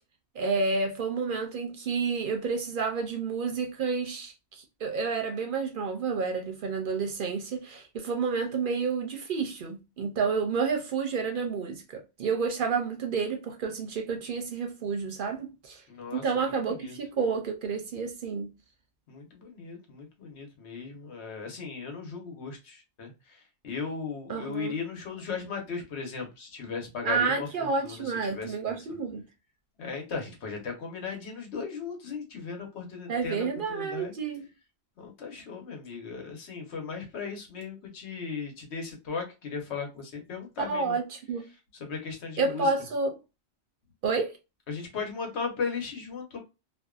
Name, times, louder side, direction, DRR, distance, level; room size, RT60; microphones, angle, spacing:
voice 1, 0.4-15.8 16.1-18.5 24.3-24.7 27.0-29.2 33.1-34.5 40.7-41.4 42.4-43.2 44.0-44.3, right 4 dB, 60° right, 0.6 m, -30 dB
voice 2, 15.9-17.0 19.1-28.8 29.8-34.1 35.0-41.0 41.8-42.7 44.7-46.4, left 5 dB, 80° left, 1.1 m, -37 dB
2.5 x 2.2 x 2.3 m
omnidirectional pair, 1.1 m